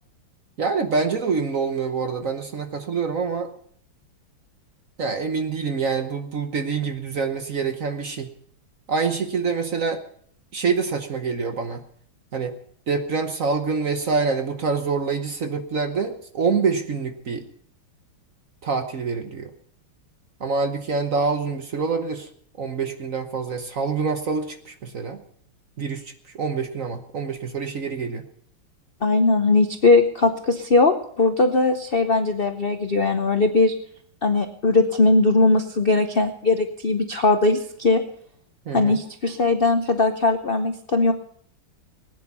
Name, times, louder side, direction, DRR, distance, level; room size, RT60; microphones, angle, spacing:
voice 1, 0.6-3.5 5.0-8.3 8.9-10.0 10.5-11.8 12.3-12.6 12.9-17.5 18.6-19.5 20.4-22.3 22.6-25.2 25.8-28.3 38.7-39.0, right 5 dB, 50° right, 7 dB, 1.0 m, -26 dB
voice 2, 29.0-33.7 34.2-38.0 38.7-41.1, left 3 dB, 80° left, 6 dB, 0.5 m, -19 dB
19.5 x 9.8 x 5.5 m, 0.63 s
omnidirectional pair, 2.4 m